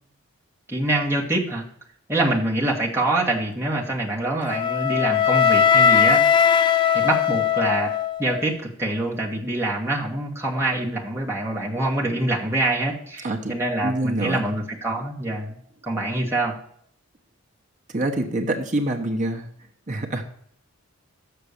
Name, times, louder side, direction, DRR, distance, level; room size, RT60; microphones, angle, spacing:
voice 1, 0.7-1.6 2.1-6.3 6.9-7.9 8.2-15.6 15.8-16.6, right 2 dB, 10° right, -2 dB, 1.5 m, -25 dB
Wind instrument woodwind instrument, 4.5-8.5, left 7 dB, 20° left, 0.3 m, -19 dB
voice 2, 13.2-13.5 13.8-14.5 17.9-19.5 19.9-20.2, right 1 dB, 35° right, 2 dB, 1.0 m, -25 dB
6.9 x 6.6 x 6.5 m, 0.66 s
head